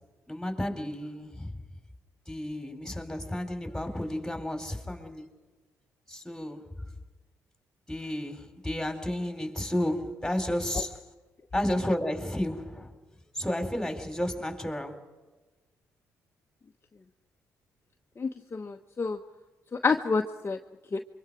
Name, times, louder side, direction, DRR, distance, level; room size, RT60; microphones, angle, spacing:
voice 1, 0.3-1.5 2.3-5.2 6.1-6.6 7.9-11.0 11.5-12.9 13.3-15.0, left 1 dB, 5° left, 5 dB, 4.4 m, -32 dB
voice 2, 18.2-19.2 19.7-20.6 20.9-21.0, left 4 dB, 35° left, 4 dB, 1.1 m, -28 dB
28.0 x 24.0 x 4.9 m, 1.2 s
supercardioid pair, 55°, 7 cm